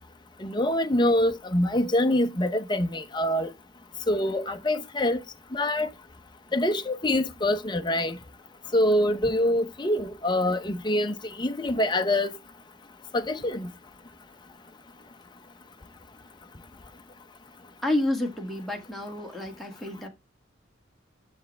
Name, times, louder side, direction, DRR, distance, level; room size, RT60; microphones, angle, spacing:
voice 1, 0.4-3.5 4.1-5.2 5.5-5.9 6.5-8.2 8.7-12.4 13.1-13.7, left 1 dB, 25° left, 0.7 m, -25 dB
voice 2, 17.8-20.1, left 1 dB, ahead, 2.0 m, -29 dB
7.2 x 7.1 x 3.2 m
head